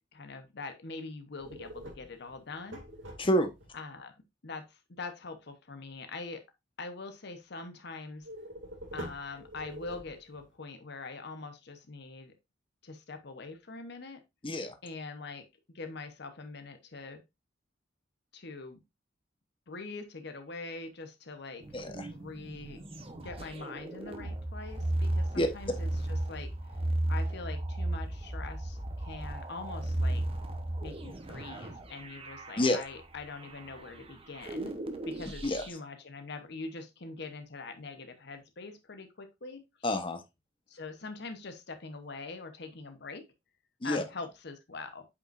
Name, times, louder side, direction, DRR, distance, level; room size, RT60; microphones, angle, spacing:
voice 1, 0.1-2.8 3.7-4.1 4.4-6.4 6.8-8.3 8.9-12.3 12.8-14.2 14.8-15.5 15.7-17.2 18.3-18.8 19.7-21.6 22.1-22.8 23.2-26.8 27.1-30.2 30.8-34.7 35.0-39.6 40.7-43.2 43.8-45.1, left 3 dB, 65° left, 7 dB, 1.0 m, -43 dB
sound 1, 1.4-3.7 8.2-10.5, equal, 90° right, 2.1 m, -45 dB
voice 2, 3.2-3.5 14.4-14.7 21.7-22.1 25.4-25.5 32.6-32.8 35.4-35.6 39.8-40.2 43.8-44.0, left 1 dB, 30° left, 7 dB, 1.0 m, -28 dB
sound 2, 21.6-35.7, right 1 dB, 30° right, 1.0 m, -35 dB
8.3 x 5.3 x 2.5 m, 0.22 s
head